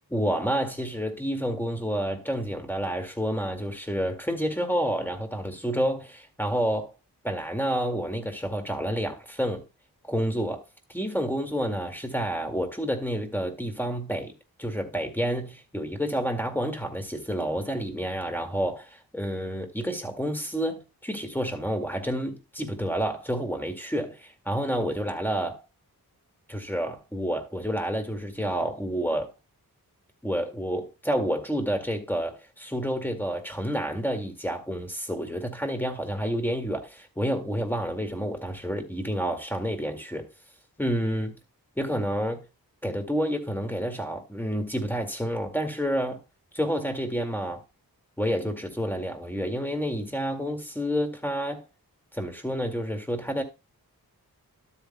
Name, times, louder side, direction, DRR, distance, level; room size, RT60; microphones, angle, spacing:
voice 1, 0.1-6.9 7.2-9.6 10.0-10.6 10.9-14.3 14.6-25.6 26.5-29.3 30.2-40.3 40.8-41.3 41.8-42.4 42.8-46.2 46.5-47.6 48.2-51.6 52.1-53.4, equal, 5° left, 2.1 m, -29 dB
12.0 x 8.3 x 2.3 m
cardioid pair, 60°, 38 cm